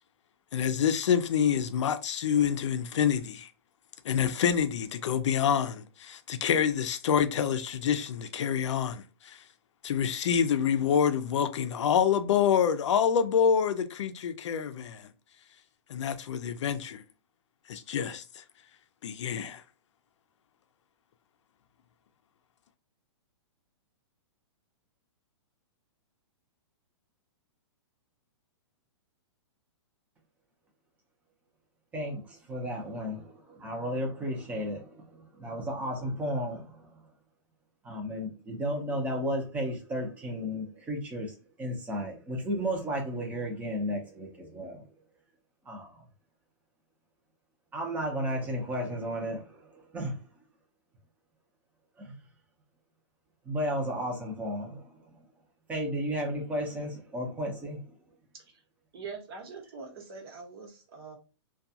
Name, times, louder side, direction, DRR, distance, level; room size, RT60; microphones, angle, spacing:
voice 1, 0.5-3.5 4.0-9.4 9.8-15.1 15.9-17.0 17.7-18.4 19.0-19.6, left 8 dB, 75° left, 0.4 m, -27 dB
voice 2, 31.9-37.0 37.8-44.9 45.7-46.0 47.7-50.2 52.0-52.1 53.5-55.0 55.7-58.0, equal, 10° right, 0.6 m, -34 dB
voice 3, 58.9-61.2, right 5 dB, 55° right, 1.1 m, -43 dB
2.3 x 2.3 x 2.7 m
hypercardioid pair, 155°, 15 cm